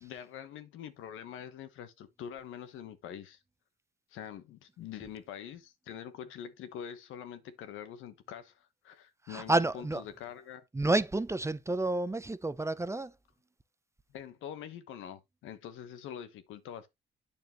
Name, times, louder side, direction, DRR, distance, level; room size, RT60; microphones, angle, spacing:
voice 1, 0.0-3.4 4.1-10.6 14.1-16.9, left 9 dB, 90° left, 1.2 m, -45 dB
voice 2, 9.3-10.0 10.7-13.1, right 2 dB, 15° right, 0.6 m, -30 dB
8.7 x 6.8 x 3.0 m
cardioid pair, 90°, 20 cm